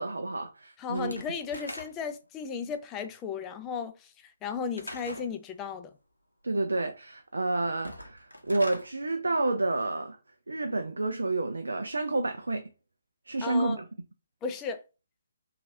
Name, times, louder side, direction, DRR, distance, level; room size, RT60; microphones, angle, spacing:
voice 1, 0.0-1.1 6.4-10.2 10.5-12.7 13.3-13.8, right 2 dB, 70° right, 0.3 m, -29 dB
voice 2, 0.8-5.9 13.4-13.8 14.4-14.8, left 6 dB, 15° left, 0.3 m, -35 dB
Slam / Wood, 0.9-2.2 4.7-5.3 7.7-8.9, left 1 dB, 90° left, 0.7 m, -42 dB
3.0 x 2.3 x 2.6 m
figure-of-eight pair, 135°, 0 cm